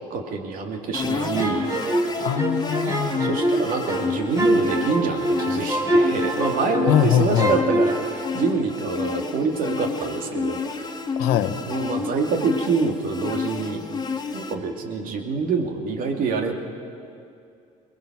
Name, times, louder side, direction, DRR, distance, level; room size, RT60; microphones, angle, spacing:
voice 1, 0.1-1.7 3.2-10.9 11.5-13.8 14.3-16.5, right 4 dB, 60° right, 3 dB, 2.4 m, -26 dB
sound 1, 0.9-14.5, left 5 dB, 25° left, 1.7 m, -30 dB
sound 2, 1.4-7.1 7.4-8.0, right 1 dB, 20° right, 3.5 m, -24 dB
voice 2, 2.2-3.3 6.9-7.5 11.2-11.6, left 10 dB, 75° left, 8 dB, 1.0 m, -22 dB
22.0 x 20.0 x 6.1 m, 2.5 s
supercardioid pair, 95°, 16 cm